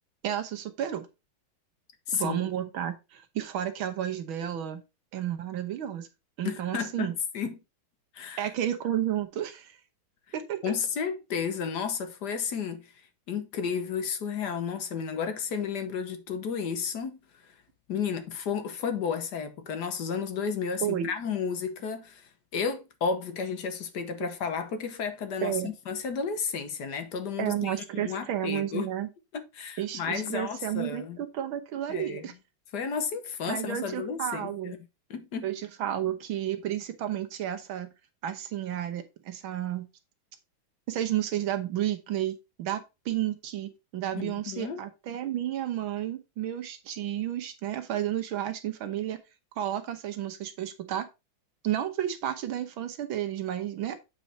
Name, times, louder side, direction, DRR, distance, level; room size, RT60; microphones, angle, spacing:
voice 1, 0.2-1.1 2.1-4.8 5.1-6.1 6.4-7.1 8.4-9.8 10.3-10.6 20.8-21.1 25.4-25.7 27.4-29.1 29.8-32.3 33.5-34.8 35.4-37.9 38.2-39.9 40.9-49.2 49.6-51.1 51.6-54.0, right 11 dB, 85° right, 1.9 m, -32 dB
voice 2, 2.1-2.5 6.4-7.6 8.1-8.4 10.6-12.9 13.3-17.2 17.9-28.9 29.3-31.2 31.9-32.3 32.7-34.8 35.1-35.5 44.2-44.8, left 6 dB, 60° left, 1.4 m, -32 dB
8.3 x 4.6 x 4.1 m
omnidirectional pair, 2.2 m